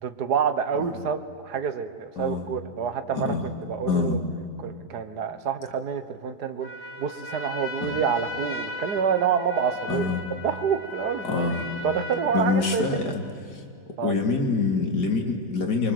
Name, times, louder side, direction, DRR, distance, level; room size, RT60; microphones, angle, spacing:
voice 1, 0.0-4.2 4.6-6.7 7.0-10.1 10.4-11.5 11.8-13.1 14.0-14.1, right 7 dB, 75° right, 11 dB, 1.8 m, -27 dB
voice 2, 2.2-2.5 3.1-3.5 3.9-4.2 7.8-8.0 9.9-10.3 11.2-11.6 12.3-13.6 14.0-15.9, left 4 dB, 85° left, 3 dB, 3.0 m, -26 dB
Trumpet, 6.6-13.1, left 1 dB, 70° left, 2.9 m, -37 dB
25.0 x 23.5 x 7.9 m, 2.4 s
omnidirectional pair, 1.7 m